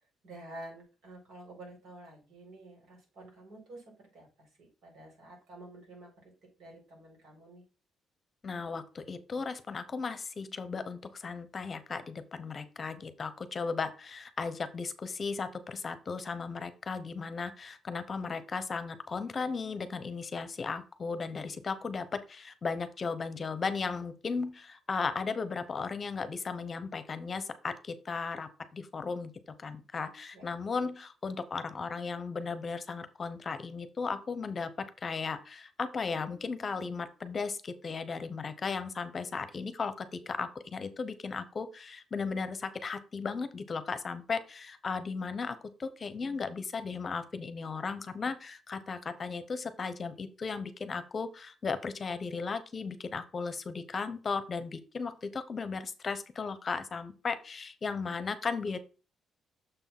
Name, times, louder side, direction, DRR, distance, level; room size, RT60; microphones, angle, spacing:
voice 1, 0.2-6.3 6.6-7.6 30.3-30.4, right 1 dB, 75° right, -1 dB, 4.3 m, -50 dB
voice 2, 8.4-58.8, left 4 dB, 40° left, 12 dB, 0.8 m, -36 dB
6.8 x 3.5 x 5.8 m, 0.34 s
cardioid pair, 90°, 0 cm